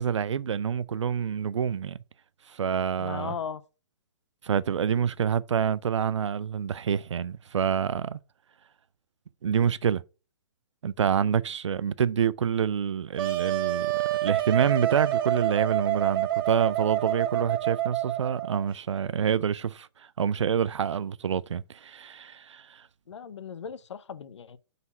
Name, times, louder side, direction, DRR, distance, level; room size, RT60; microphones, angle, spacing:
voice 1, 0.0-2.0 2.5-3.3 4.4-8.2 9.4-10.0 10.8-19.9 20.2-22.8, right 7 dB, 85° right, 0.4 m, -27 dB
voice 2, 3.0-3.6 23.1-24.6, left 7 dB, 80° left, 0.6 m, -37 dB
Wind instrument woodwind instrument, 13.2-18.7, right 13 dB, 50° right, 0.9 m, -27 dB
5.4 x 4.1 x 5.9 m
hypercardioid pair, 140°, 15 cm